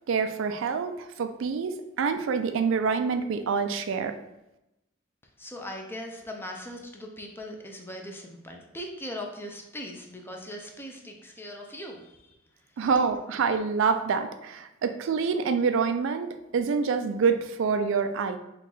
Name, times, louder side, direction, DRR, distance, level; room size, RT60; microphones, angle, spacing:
voice 1, 0.1-4.2 12.8-18.4, right 5 dB, 70° right, 8 dB, 0.3 m, -26 dB
voice 2, 5.4-12.9, left 1 dB, 10° left, 2 dB, 0.5 m, -40 dB
4.5 x 2.3 x 3.8 m, 0.89 s
head